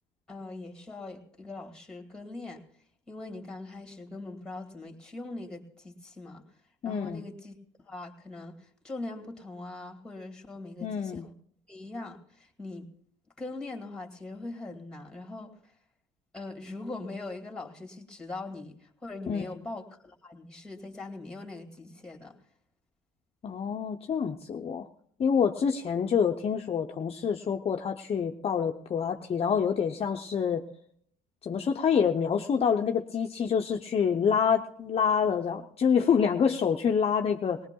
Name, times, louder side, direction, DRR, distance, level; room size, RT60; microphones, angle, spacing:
voice 1, 0.3-2.6 3.1-6.4 6.8-7.5 7.9-11.3 11.7-12.9 13.4-15.5 16.3-22.4, left 2 dB, 5° left, 2 dB, 2.3 m, -41 dB
voice 2, 6.8-7.2 10.8-11.3 19.3-19.6 23.4-24.9 25.2-30.7 31.4-37.6, left 7 dB, 35° left, 3 dB, 0.6 m, -27 dB
19.5 x 19.5 x 2.3 m, 0.66 s
cardioid pair, 110°, 17 cm